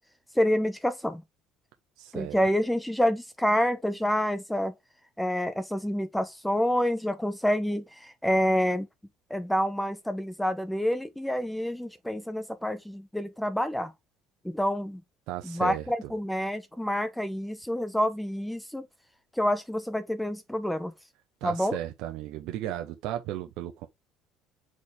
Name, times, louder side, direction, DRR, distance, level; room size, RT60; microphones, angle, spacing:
voice 1, 0.3-1.2 2.1-4.7 5.2-8.9 9.3-13.9 14.4-15.0 15.4-18.9 19.4-20.9 21.4-21.8, equal, 5° left, 0.9 m, -28 dB
voice 2, 2.0-2.4 15.3-16.1 21.4-23.9, right 12 dB, 70° right, 0.8 m, -35 dB
6.3 x 4.2 x 3.6 m
supercardioid pair, 75°, 0 cm